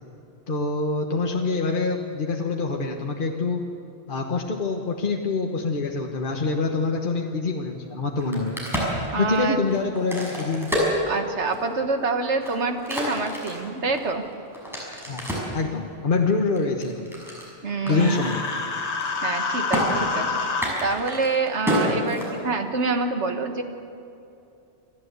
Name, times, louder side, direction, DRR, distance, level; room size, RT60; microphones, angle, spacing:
voice 1, 0.5-3.6 4.1-8.6 9.0-10.7 15.1-15.2 15.5-17.1 17.9-18.4, left 3 dB, 50° left, 2 dB, 1.4 m, -25 dB
Crack, 8.1-11.7 12.2-15.6 16.1-17.5 17.9-18.0 18.2-18.6 18.8-19.4 19.7-19.8 20.5-22.7, equal, ahead, 6.3 m, -29 dB
voice 2, 9.1-9.6 11.0-14.2 17.6-18.2 19.2-20.3 20.8-23.6, right 3 dB, 90° right, 6 dB, 1.8 m, -26 dB
Human voice, 17.9-20.7, left 4 dB, 75° left, 1.6 m, -27 dB
28.0 x 12.0 x 8.2 m, 2.7 s
omnidirectional pair, 1.1 m